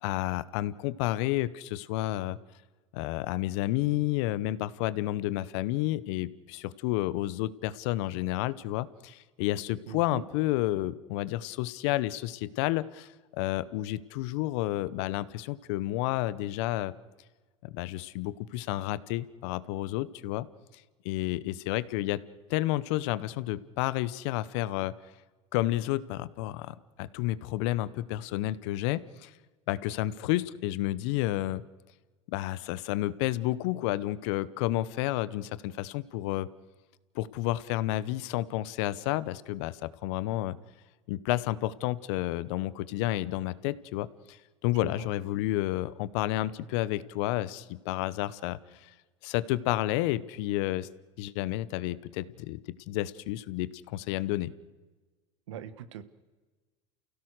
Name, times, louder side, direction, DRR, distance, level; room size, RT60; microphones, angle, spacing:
voice 1, 0.0-2.4 2.9-16.9 17.6-20.5 21.0-22.2 22.5-24.9 25.5-29.3 29.7-31.6 32.3-36.5 37.1-40.6 41.1-44.4 44.6-48.9 49.2-50.9 51.2-54.5, left 16 dB, 70° left, 17 dB, 1.0 m, -31 dB
voice 2, 9.9-10.2 44.8-45.1 55.5-56.0, right 8 dB, 85° right, 13 dB, 1.4 m, -41 dB
29.5 x 16.5 x 6.5 m, 1.3 s
hypercardioid pair, 85°, 15 cm